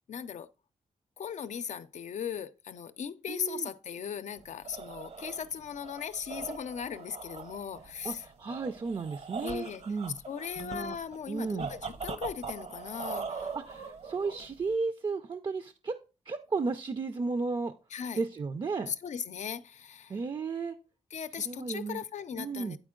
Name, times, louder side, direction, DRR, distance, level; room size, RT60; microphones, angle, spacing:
voice 1, 0.1-0.5 1.2-8.3 9.4-9.8 10.3-13.5 17.9-18.2 18.9-20.2 21.1-22.8, left 8 dB, 70° left, 0.5 m, -38 dB
voice 2, 3.3-3.7 8.0-10.2 10.6-10.9 11.3-11.7 13.5-16.0 16.3-17.7 18.1-18.9 20.1-20.8 21.4-22.0 22.4-22.8, right 4 dB, 40° right, 0.5 m, -34 dB
sound 1, 4.4-14.7, right 5 dB, 60° right, 0.9 m, -42 dB
9.2 x 4.3 x 3.7 m
wide cardioid pair, 100°, 13 cm